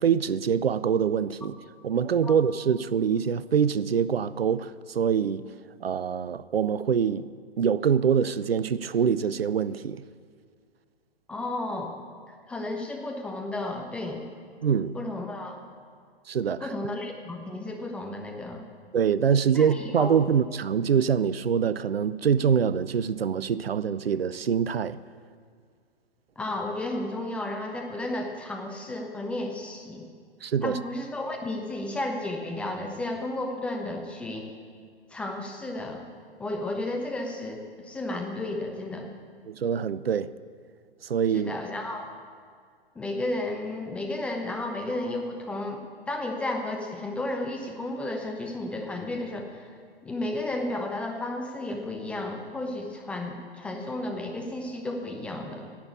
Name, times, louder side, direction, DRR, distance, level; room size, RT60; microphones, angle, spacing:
voice 1, 0.0-1.6 1.8-5.4 5.8-7.3 7.6-10.0 14.6-15.0 16.3-16.7 18.9-25.0 30.4-30.8 39.5-40.3 41.0-41.5, right 7 dB, 70° right, 0.5 m, -24 dB
voice 2, 11.3-11.9 12.3-14.2 14.9-15.6 16.6-18.7 19.5-20.2 26.4-30.1 30.6-34.5 35.1-36.0 36.4-39.1 41.3-42.1 43.0-45.8 46.1-49.7 50.0-55.8, left 2 dB, 5° left, 0.4 m, -33 dB
10.5 x 8.6 x 8.4 m
figure-of-eight pair, 115°, 31 cm